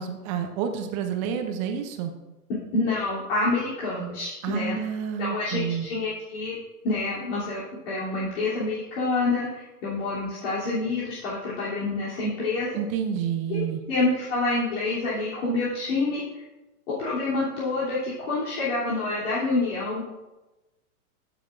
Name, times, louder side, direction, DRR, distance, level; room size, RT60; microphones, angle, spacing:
voice 1, 0.0-2.1 4.4-5.9 12.7-13.8, right 8 dB, 20° right, 6 dB, 0.5 m, -29 dB
voice 2, 2.7-4.8 5.2-6.6 6.8-12.7 13.5-13.6 13.9-16.4 17.0-20.1, left 3 dB, 55° left, -9 dB, 3.1 m, -27 dB
14.5 x 6.7 x 2.5 m, 1.1 s
hypercardioid pair, 135°, 45 cm